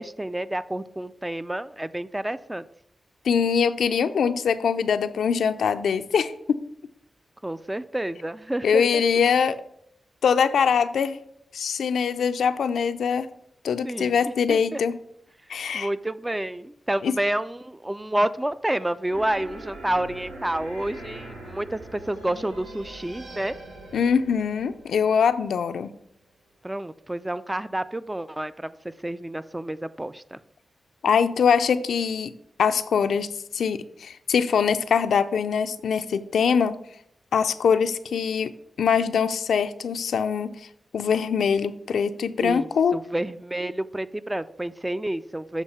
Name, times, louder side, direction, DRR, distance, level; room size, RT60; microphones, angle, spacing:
voice 1, 0.0-2.6 7.4-9.0 13.8-14.8 15.7-23.6 26.6-30.4 42.4-45.6, right 1 dB, 15° right, 14 dB, 0.3 m, -29 dB
voice 2, 3.2-6.7 8.6-9.6 10.2-11.2 11.5-13.3 13.6-15.0 15.5-15.9 17.0-17.2 23.9-25.9 31.0-32.3 32.6-36.8 37.3-38.5 38.8-40.5 40.9-43.0, left 6 dB, 90° left, 11 dB, 0.4 m, -23 dB
sound 1, 19.1-25.9, right 2 dB, 80° right, 1.4 m, -42 dB
7.3 x 3.5 x 5.4 m, 0.73 s
cardioid pair, 65°, 0 cm